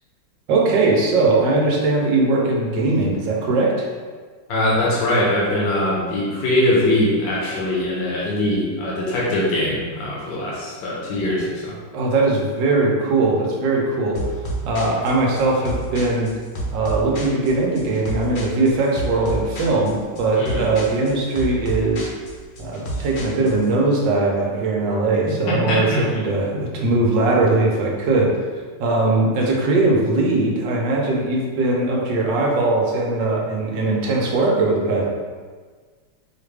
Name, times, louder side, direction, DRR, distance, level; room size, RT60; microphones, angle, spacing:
voice 1, 0.5-3.9 11.9-14.2 14.6-16.3 16.7-22.1 22.6-28.3 28.8-35.0, right 2 dB, 85° right, -2 dB, 1.5 m, -20 dB
voice 2, 4.5-11.7 20.4-20.7 25.5-26.1, left 1 dB, 80° left, -5 dB, 1.5 m, -22 dB
sound 1, 14.2-23.7, right 2 dB, 55° left, 0.9 m, -30 dB
4.7 x 2.4 x 3.3 m, 1.5 s
omnidirectional pair, 1.9 m